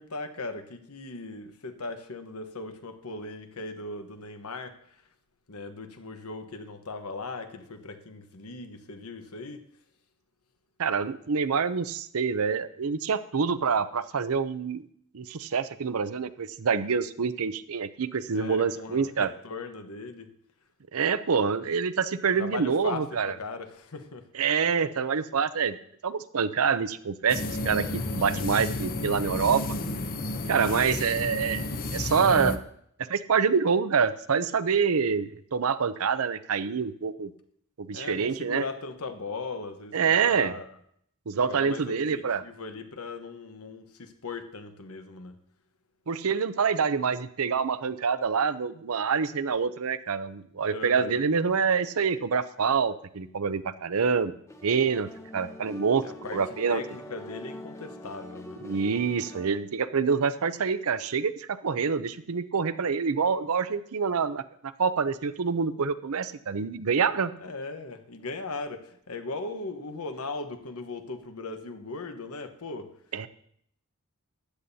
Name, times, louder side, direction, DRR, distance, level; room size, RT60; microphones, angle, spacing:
voice 1, 0.0-5.0 5.5-9.6 18.3-20.3 22.3-24.3 30.7-31.0 37.9-40.7 41.4-45.4 50.7-51.2 56.0-58.6 67.4-72.9, left 3 dB, 85° left, 7 dB, 1.1 m, -38 dB
voice 2, 10.8-14.8 15.1-19.3 20.9-23.3 24.4-25.8 26.0-29.6 30.5-31.6 31.9-32.6 33.1-37.3 37.8-38.6 39.9-40.5 41.3-42.4 46.1-54.3 54.6-56.0 56.3-56.8 58.6-67.3 73.1-73.3, right 6 dB, 75° right, 13 dB, 0.6 m, -26 dB
sound 1, 27.3-32.6, left 2 dB, 40° left, 0.7 m, -32 dB
sound 2, 54.5-59.6, left 1 dB, 15° left, 0.8 m, -43 dB
15.0 x 10.0 x 2.8 m, 0.68 s
head